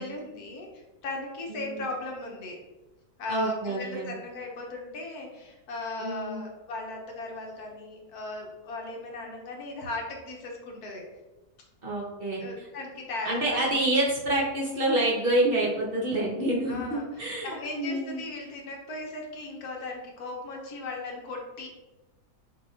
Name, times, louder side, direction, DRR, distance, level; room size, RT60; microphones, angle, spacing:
voice 1, 0.0-2.6 3.2-11.1 12.4-13.7 16.7-21.7, left 2 dB, 65° left, 0 dB, 1.4 m, -37 dB
voice 2, 1.5-1.8 3.3-4.1 6.0-6.4 11.8-12.4 13.2-18.2, right 1 dB, 45° right, -3 dB, 0.8 m, -27 dB
6.0 x 2.8 x 2.8 m, 1.1 s
omnidirectional pair, 1.8 m